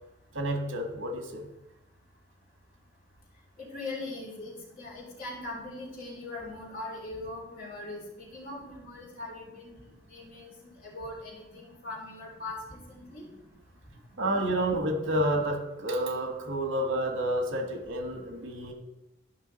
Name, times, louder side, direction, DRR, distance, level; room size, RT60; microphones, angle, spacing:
voice 1, 0.3-1.5 14.2-18.7, right 1 dB, 80° right, 5 dB, 1.5 m, -29 dB
voice 2, 3.6-9.8 10.1-13.3, left 2 dB, 45° left, -5 dB, 3.0 m, -41 dB
12.0 x 5.6 x 4.0 m, 0.95 s
head